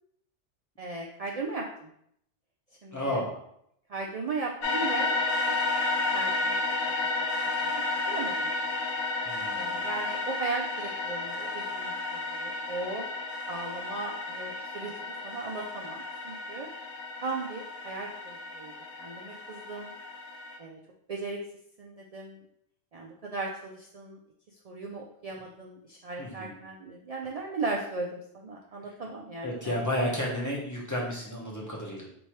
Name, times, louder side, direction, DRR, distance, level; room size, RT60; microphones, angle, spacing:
voice 1, 0.8-1.9 2.8-3.2 3.9-5.6 6.1-6.6 7.4-8.5 9.5-13.1 13.5-16.7 17.2-18.7 19.0-19.9 20.6-20.8 21.1-21.4 21.8-22.4 22.9-24.2 24.6-29.8, right 3 dB, 75° right, -1 dB, 0.3 m, -37 dB
voice 2, 2.9-3.4 9.2-9.9 11.1-11.2 26.2-26.6 29.4-32.1, equal, 20° left, -4 dB, 0.7 m, -32 dB
sound 1, 4.6-20.6, left 3 dB, 85° left, 1.0 m, -32 dB
3.1 x 2.6 x 4.4 m, 0.71 s
omnidirectional pair, 1.2 m